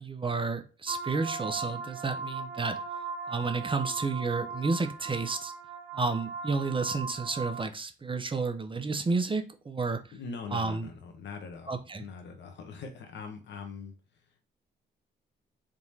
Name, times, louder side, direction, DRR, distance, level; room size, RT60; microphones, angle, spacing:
voice 1, 0.0-2.8 3.3-5.5 5.9-10.0 10.5-10.9 11.7-12.0, right 4 dB, 25° right, 8 dB, 0.6 m, -31 dB
sound 1, 0.9-7.6, right 4 dB, 70° right, 0.7 m, -38 dB
voice 2, 10.1-14.4, left 4 dB, 70° left, 4 dB, 0.9 m, -42 dB
3.6 x 2.9 x 2.7 m, 0.34 s
cardioid pair, 70°, 19 cm